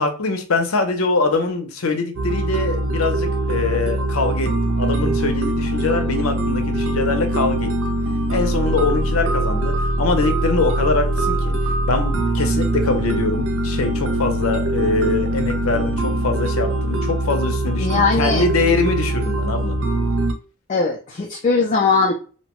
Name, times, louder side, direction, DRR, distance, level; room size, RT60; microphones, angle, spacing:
voice 1, 0.0-7.7 8.3-11.5 11.9-19.8, left 3 dB, 80° left, 0.6 m, -23 dB
sound 1, 2.2-20.3, right 1 dB, 65° right, 0.5 m, -22 dB
voice 2, 17.8-18.5 20.7-22.1, left 4 dB, 35° left, 0.4 m, -19 dB
2.8 x 2.1 x 2.9 m
head